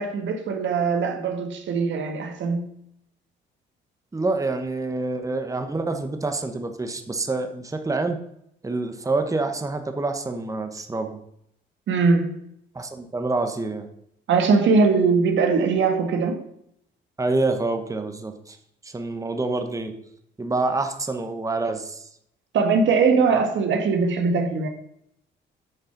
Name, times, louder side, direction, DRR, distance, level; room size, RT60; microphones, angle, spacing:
voice 1, 0.0-2.7 11.9-12.4 14.3-16.5 22.5-24.7, right 4 dB, 70° right, 1.7 m, -21 dB
voice 2, 4.1-8.2 8.6-11.2 12.7-13.9 17.2-18.6 18.8-19.9 20.4-22.1, right 3 dB, 15° right, 1.2 m, -27 dB
9.1 x 6.6 x 5.9 m
cardioid pair, 90°, 20 cm